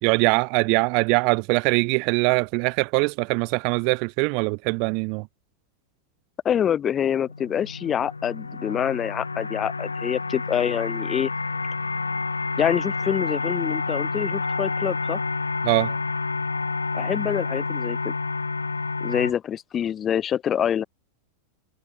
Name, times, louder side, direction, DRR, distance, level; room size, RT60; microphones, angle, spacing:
voice 1, 0.0-5.3 15.6-16.0, right 36 dB, 45° right, 0.8 m, -22 dB
voice 2, 6.4-11.3 12.6-15.2 16.9-18.1 19.0-20.8, left 9 dB, 25° left, 1.6 m, -26 dB
sound 1, 7.3-19.3, left 4 dB, 80° left, 1.0 m, -29 dB
figure-of-eight pair, 90°, 0 cm